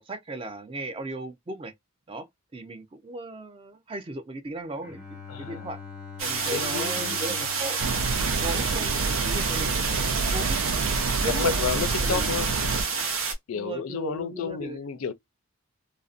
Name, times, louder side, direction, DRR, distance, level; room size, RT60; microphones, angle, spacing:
voice 1, 0.1-1.7 2.1-2.3 2.5-5.8 6.2-7.8 8.4-10.6 11.2-11.7 12.0-12.3 13.5-14.8, right 2 dB, 25° right, 0.4 m, -36 dB
Bowed string instrument, 4.8-9.3, left 6 dB, 10° right, 1.2 m, -44 dB
voice 2, 5.3-5.7 6.5-7.2 11.2-12.5 13.5-15.1, left 7 dB, 70° left, 0.4 m, -31 dB
sound 1, 6.2-13.3, right 5 dB, 65° right, 0.7 m, -29 dB
sound 2, 7.8-12.8, right 3 dB, 90° right, 0.4 m, -28 dB
2.5 x 2.0 x 2.4 m
head